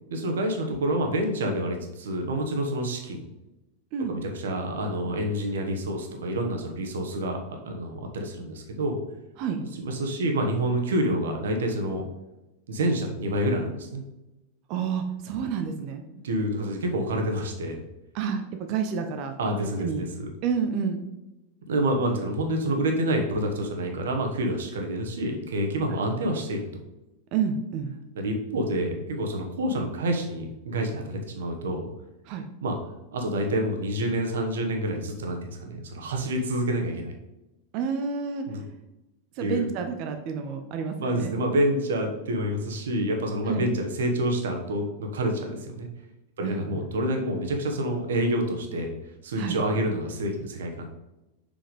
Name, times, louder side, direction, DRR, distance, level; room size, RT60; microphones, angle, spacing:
voice 1, 0.1-3.2 4.1-7.4 7.6-9.0 9.7-12.1 12.7-14.0 16.1-17.8 19.4-19.9 20.2-20.3 21.7-26.7 28.1-31.9 32.6-32.8 33.1-37.1 38.5-38.6 39.4-39.7 41.0-45.9 46.4-48.9 49.2-50.9, right 1 dB, 60° right, 3 dB, 1.2 m, -28 dB
voice 2, 14.7-16.0 18.1-19.3 19.8-20.0 20.4-21.0 27.3-27.9 32.3-32.4 37.7-38.5 39.4-41.3 43.5-43.7 46.4-46.8 49.4-49.6, right 6 dB, 45° right, 6 dB, 0.7 m, -29 dB
5.7 x 5.2 x 5.2 m, 0.98 s
figure-of-eight pair, 90°, 0 cm